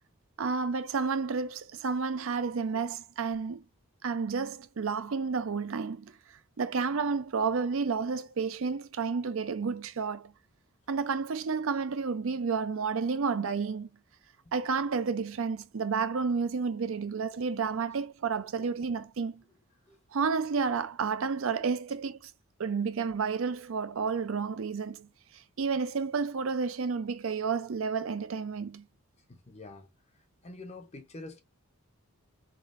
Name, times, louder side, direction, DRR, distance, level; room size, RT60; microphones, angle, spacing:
voice 1, 0.4-3.6 4.0-6.1 6.6-10.3 10.9-13.9 14.5-19.4 20.1-22.3 22.6-25.1 25.3-28.8, right 5 dB, 65° right, 0.5 m, -31 dB
voice 2, 29.3-31.4, left 2 dB, 30° left, 0.6 m, -47 dB
3.9 x 3.5 x 2.5 m
head